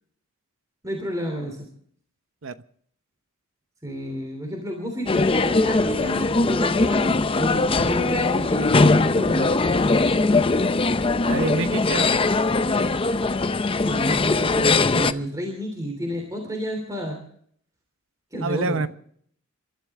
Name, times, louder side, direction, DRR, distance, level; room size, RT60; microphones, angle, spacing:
voice 1, 0.8-1.6 3.8-9.6 13.7-17.2 18.3-18.8, equal, 15° right, 2 dB, 3.2 m, -30 dB
sound 1, 5.1-15.1, left 3 dB, 25° left, 0.5 m, -21 dB
voice 2, 11.2-12.2 18.4-18.9, right 3 dB, 65° right, 12 dB, 0.9 m, -26 dB
29.5 x 13.0 x 3.6 m, 0.63 s
head